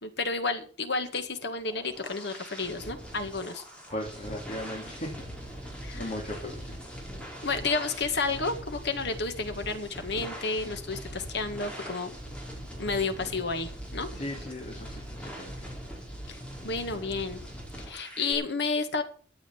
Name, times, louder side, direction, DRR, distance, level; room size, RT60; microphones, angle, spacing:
voice 1, 0.0-3.6 5.8-6.1 6.4-6.5 7.4-12.1 12.8-14.1 16.3-16.4 16.6-17.4 17.9-19.0, left 3 dB, 65° left, 8 dB, 1.9 m, -31 dB
sound 1, 1.4-18.3, equal, 5° left, 4.3 m, -41 dB
voice 2, 3.9-5.6 5.9-6.8 14.1-15.7, left 1 dB, 40° left, 0 dB, 3.0 m, -38 dB
13.0 x 8.0 x 7.2 m, 0.43 s
head